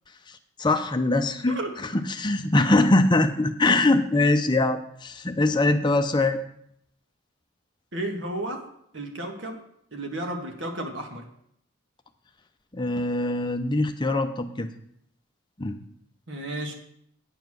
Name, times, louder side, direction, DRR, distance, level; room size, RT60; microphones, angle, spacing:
voice 1, 0.6-1.6 1.9-6.4 12.7-14.7 15.6-15.8, left 2 dB, 20° left, 6 dB, 0.6 m, -22 dB
voice 2, 7.9-8.6 8.9-9.6 9.9-11.2 16.3-16.7, right 1 dB, 60° right, 3 dB, 1.8 m, -32 dB
9.2 x 7.3 x 6.1 m, 0.71 s
head